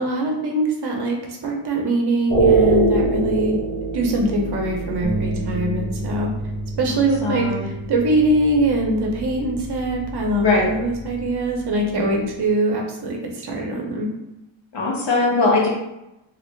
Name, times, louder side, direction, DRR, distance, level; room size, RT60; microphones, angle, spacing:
voice 1, 0.0-3.6 3.9-6.3 6.8-14.1, right 1 dB, 55° right, 1 dB, 0.8 m, -22 dB
sound 1, 2.3-12.5, right 3 dB, 20° left, 0.6 m, -26 dB
sound 2, 5.0-11.3, right 2 dB, 30° right, 0.4 m, -32 dB
voice 2, 7.2-7.6 10.4-10.7 14.7-15.7, left 3 dB, 60° left, -3 dB, 1.1 m, -20 dB
3.2 x 2.6 x 3.2 m, 0.92 s
wide cardioid pair, 125°, 48 cm